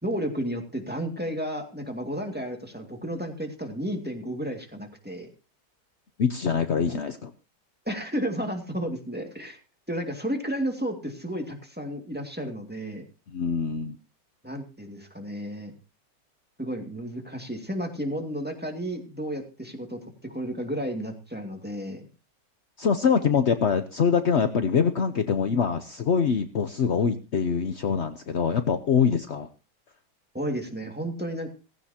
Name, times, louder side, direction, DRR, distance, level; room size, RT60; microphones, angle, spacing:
voice 1, 0.0-5.3 6.7-6.8 7.9-9.6 9.9-13.1 14.4-15.7 16.6-22.1 30.3-31.5, equal, 5° right, 3 dB, 2.1 m, -32 dB
voice 2, 6.2-7.3 13.3-14.0 22.8-29.5, left 6 dB, 70° left, 9 dB, 0.6 m, -24 dB
16.0 x 16.0 x 2.8 m, 0.31 s
omnidirectional pair, 2.3 m